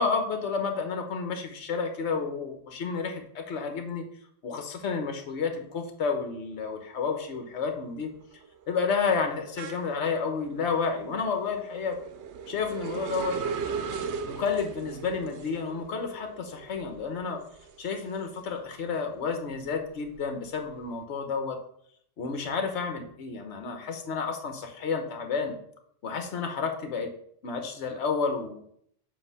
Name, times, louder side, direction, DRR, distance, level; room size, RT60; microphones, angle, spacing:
voice 1, 0.0-4.0 4.4-8.1 8.7-12.0 12.5-13.4 14.3-17.4 17.8-21.6 22.2-25.6 26.0-27.1 27.4-28.7, left 5 dB, 70° left, 5 dB, 1.2 m, -30 dB
sound 1, 6.7-7.1 7.4-18.7 19.1-20.8, right 6 dB, 75° right, 0.9 m, -39 dB
7.7 x 2.6 x 5.4 m, 0.66 s
omnidirectional pair, 1.2 m